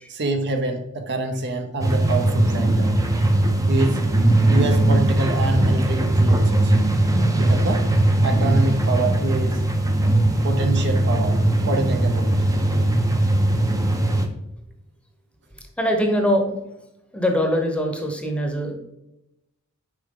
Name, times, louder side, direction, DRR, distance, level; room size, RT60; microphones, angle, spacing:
voice 1, 0.1-2.9 3.7-4.0 4.5-6.7 7.4-7.9 8.2-9.6 10.4-11.4 11.7-12.4, right 2 dB, 55° right, 5 dB, 0.8 m, -26 dB
sound 1, 1.8-14.3, right 1 dB, 15° right, 0.6 m, -19 dB
voice 2, 15.8-16.4 17.1-18.7, equal, 5° left, 3 dB, 0.9 m, -22 dB
6.6 x 4.8 x 3.7 m, 0.88 s
head